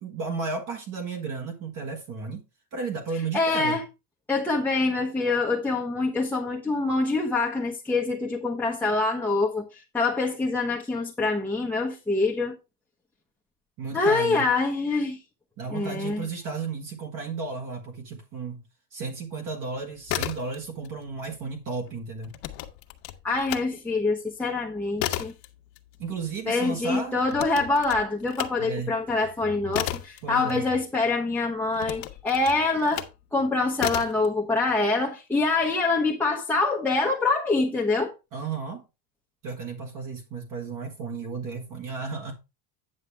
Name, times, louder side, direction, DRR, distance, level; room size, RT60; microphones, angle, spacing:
voice 1, 0.0-2.4 2.7-3.8 13.8-14.5 15.6-18.6 18.9-22.3 26.0-27.2 28.6-28.9 30.2-30.6 38.3-38.8 39.4-42.3, right 4 dB, 40° right, 1.7 m, -33 dB
voice 2, 3.3-3.8 4.3-12.6 13.9-15.2 15.7-16.2 23.2-25.3 26.5-33.0 33.3-38.1, left 3 dB, 5° left, 1.0 m, -25 dB
sound 1, 19.9-20.9 21.2-23.7 24.1-31.1 31.7-33.2 33.8-34.3, left 15 dB, 70° left, 1.4 m, -34 dB
9.6 x 7.2 x 3.4 m
supercardioid pair, 140°, 48 cm